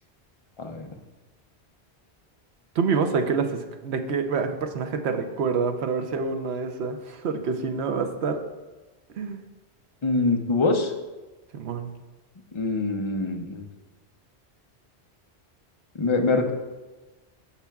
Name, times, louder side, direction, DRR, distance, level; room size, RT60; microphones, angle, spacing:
voice 1, 0.6-0.9 10.0-10.9 12.5-13.6 16.0-16.5, left 3 dB, 30° left, 4 dB, 0.6 m, -24 dB
voice 2, 2.8-8.4 9.1-9.4 11.5-11.9, right 5 dB, 75° right, 6 dB, 1.0 m, -27 dB
15.0 x 5.7 x 2.3 m, 1.2 s
omnidirectional pair, 1.1 m